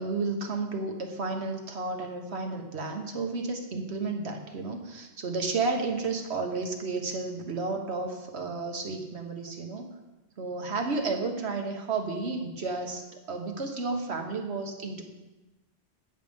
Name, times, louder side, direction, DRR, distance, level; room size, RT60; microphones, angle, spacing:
voice 1, 0.0-9.9 10.4-15.0, right 3 dB, 80° right, 3 dB, 1.4 m, -32 dB
16.5 x 6.5 x 3.5 m, 1.1 s
omnidirectional pair, 1.1 m